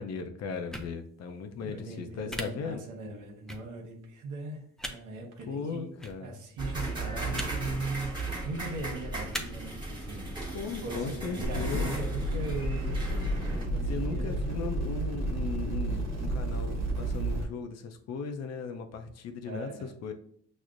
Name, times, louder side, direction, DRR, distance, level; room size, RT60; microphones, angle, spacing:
voice 1, 0.0-2.8 5.5-6.4 10.5-11.9 13.9-20.1, left 5 dB, 60° left, 6 dB, 0.6 m, -37 dB
sound 1, 0.7-0.9 2.3-2.4 3.5-3.6 4.8-4.9 6.0-6.1 7.3-7.5 8.1-8.3 9.3-9.4, equal, ahead, 0.4 m, -36 dB
voice 2, 1.6-5.9 6.2-10.4 10.8-14.5 19.4-19.9, right 2 dB, 80° right, 1 dB, 0.9 m, -39 dB
sound 2, 6.6-13.7, right 2 dB, 15° right, 1.2 m, -37 dB
sound 3, 11.4-17.4, right 1 dB, 60° right, 1.1 m, -31 dB
6.1 x 2.0 x 2.5 m, 0.63 s
cardioid pair, 90°, 30 cm